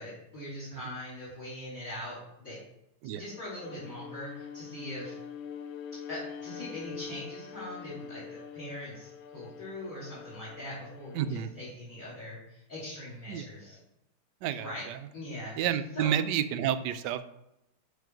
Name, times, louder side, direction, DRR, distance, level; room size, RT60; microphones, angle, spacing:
voice 1, 0.0-2.6 3.1-5.2 6.1-13.8 14.6-14.8 15.1-15.7 15.9-16.1, left 1 dB, 40° left, -7 dB, 3.4 m, -41 dB
Bowed string instrument, 3.2-11.6, left 7 dB, 75° left, 1.5 m, -44 dB
voice 2, 11.1-11.5 13.3-13.5 14.4-15.0 15.6-17.2, right 9 dB, 70° right, 12 dB, 1.0 m, -30 dB
11.5 x 4.1 x 5.3 m, 0.84 s
omnidirectional pair, 2.3 m